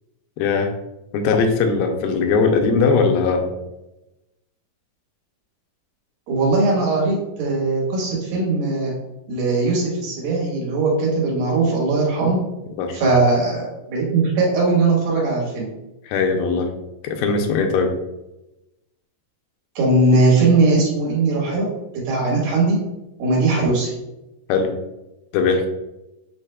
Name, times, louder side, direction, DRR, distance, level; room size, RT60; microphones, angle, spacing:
voice 1, 0.4-0.7 1.1-3.5 12.8-13.1 16.0-16.7 17.0-17.9 24.5-24.7 25.3-25.7, left 4 dB, 85° left, 4 dB, 2.4 m, -19 dB
voice 2, 6.3-8.9 9.3-12.4 12.9-15.7 19.8-21.7 22.0-22.8 23.2-23.9, right 3 dB, 85° right, -4 dB, 3.2 m, -19 dB
7.0 x 3.2 x 2.2 m, 0.95 s
omnidirectional pair, 4.0 m